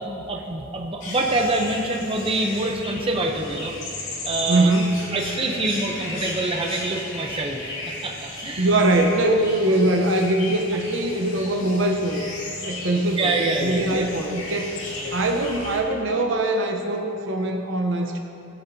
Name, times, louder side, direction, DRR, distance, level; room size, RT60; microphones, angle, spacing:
voice 1, 0.0-3.7 4.2-4.7 5.1-7.6 8.0-8.7 13.2-14.1 15.0-15.2, right 2 dB, 25° right, 1 dB, 0.8 m, -25 dB
sound 1, 1.0-15.8, left 2 dB, 80° left, 2.5 m, -35 dB
voice 2, 4.5-5.0 8.6-12.2 12.6-18.2, right 1 dB, 70° right, 3 dB, 1.0 m, -22 dB
18.0 x 8.2 x 2.8 m, 2.9 s
head